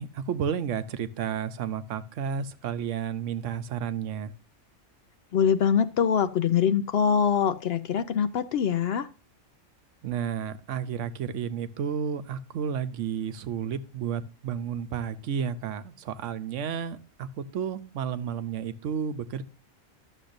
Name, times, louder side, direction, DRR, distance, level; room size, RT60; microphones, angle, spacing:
voice 1, 0.0-4.3 10.0-19.4, right 7 dB, 75° right, 13 dB, 1.0 m, -32 dB
voice 2, 5.3-9.1, left 7 dB, 65° left, 12 dB, 0.7 m, -24 dB
11.5 x 7.2 x 2.6 m, 0.33 s
omnidirectional pair, 1.3 m